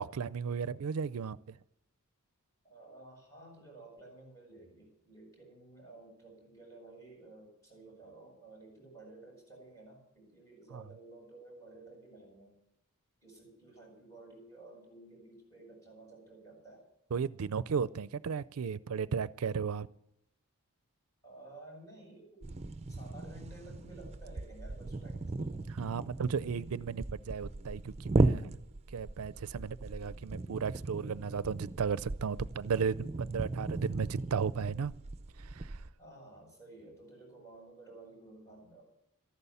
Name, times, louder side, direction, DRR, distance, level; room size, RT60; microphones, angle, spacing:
voice 1, 0.0-1.6 10.7-10.8 17.1-19.9 25.7-28.6 28.9-34.9 35.4-35.8, right 6 dB, 75° right, 0.4 m, -35 dB
voice 2, 2.6-12.5 13.2-16.9 21.2-22.5 22.8-25.7 36.0-38.8, right 2 dB, 15° left, 7.4 m, -53 dB
sound 1, 22.4-35.9, right 2 dB, 30° right, 0.6 m, -36 dB
13.5 x 11.5 x 6.9 m
head